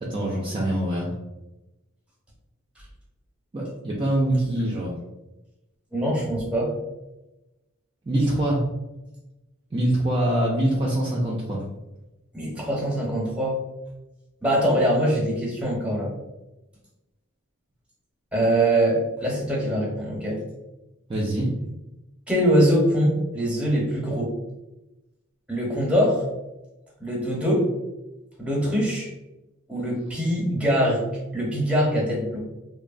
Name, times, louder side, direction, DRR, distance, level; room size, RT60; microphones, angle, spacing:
voice 1, 0.0-1.1 3.5-5.0 8.1-8.6 9.7-11.6 21.1-21.6, right 1 dB, 25° right, -4 dB, 0.4 m, -24 dB
voice 2, 5.9-6.7 12.3-13.6 14.4-16.1 18.3-20.4 22.3-24.3 25.5-26.2 27.0-27.7 28.4-29.1 29.7-31.0 31.3-32.4, equal, 5° right, -3 dB, 0.7 m, -23 dB
3.0 x 2.0 x 2.4 m, 1.0 s
head